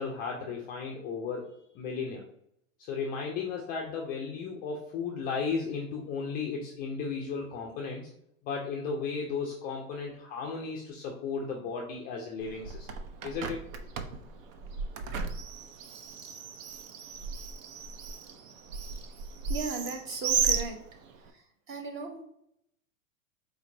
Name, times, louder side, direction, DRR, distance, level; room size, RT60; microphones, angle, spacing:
voice 1, 0.0-2.2 2.8-8.1 8.4-12.9 13.2-13.6, left 5 dB, 25° left, -1 dB, 0.3 m, -35 dB
Bird, 12.4-21.3, right 6 dB, 65° right, 0.6 m, -35 dB
voice 2, 19.5-20.8 21.2-22.2, right 4 dB, 30° right, 4 dB, 0.8 m, -37 dB
4.3 x 2.8 x 2.5 m, 0.74 s
hypercardioid pair, 120°, 42 cm